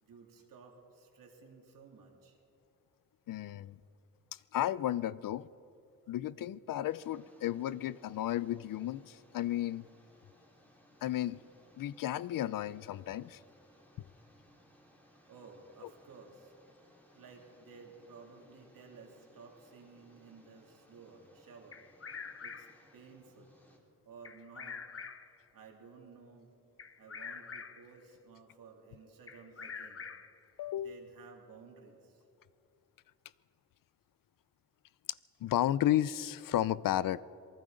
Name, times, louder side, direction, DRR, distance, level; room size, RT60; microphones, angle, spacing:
voice 1, 0.0-2.4 15.3-16.5 16.8-21.8 22.4-22.7 22.9-23.6 24.0-24.9 25.2-26.5 27.0-30.1 30.8-32.2, right 4 dB, 85° right, 3.2 m, -55 dB
voice 2, 3.3-3.8 4.5-5.5 6.1-9.9 11.0-11.4 11.8-13.4 30.6-31.0 35.4-37.2, left 12 dB, 85° left, 0.6 m, -33 dB
sound 1, 6.9-23.8, equal, 5° left, 3.7 m, -64 dB
Bird vocalization bird call bird song, 21.7-22.9 24.2-25.4 26.8-28.0 29.3-30.5, left 6 dB, 45° left, 1.1 m, -45 dB
27.0 x 19.5 x 5.1 m
cardioid pair, 100°, 33 cm